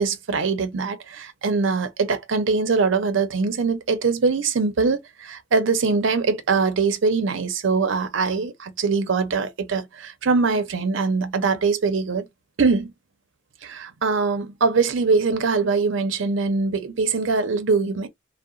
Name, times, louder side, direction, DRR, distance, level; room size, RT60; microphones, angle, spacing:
voice 1, 0.0-12.3 12.6-12.9 13.6-18.1, right 4 dB, 70° right, 0.6 m, -22 dB
2.8 x 2.1 x 2.4 m
head